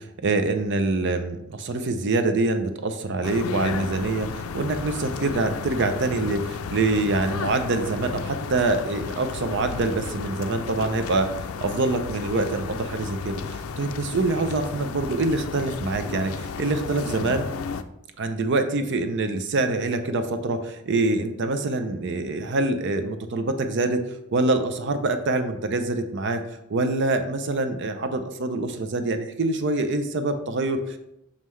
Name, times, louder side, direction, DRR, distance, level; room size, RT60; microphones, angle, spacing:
voice 1, 0.0-17.5 18.2-26.4 26.7-31.0, right 2 dB, 60° right, 8 dB, 0.6 m, -25 dB
sound 1, 3.2-17.8, left 5 dB, 80° left, 0.4 m, -33 dB
6.5 x 5.5 x 3.1 m, 0.84 s
head